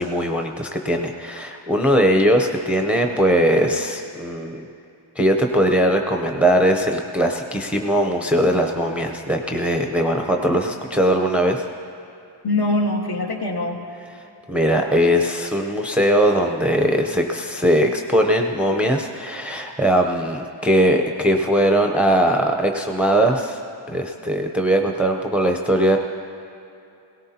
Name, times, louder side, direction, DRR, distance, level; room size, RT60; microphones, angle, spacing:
voice 1, 0.0-4.7 5.2-11.7 14.5-23.6 23.9-26.0, equal, 5° right, 3 dB, 0.6 m, -20 dB
voice 2, 12.4-13.8, left 2 dB, 55° left, 0 dB, 1.6 m, -23 dB
18.0 x 17.5 x 2.8 m, 2.7 s
wide cardioid pair, 110°, 47 cm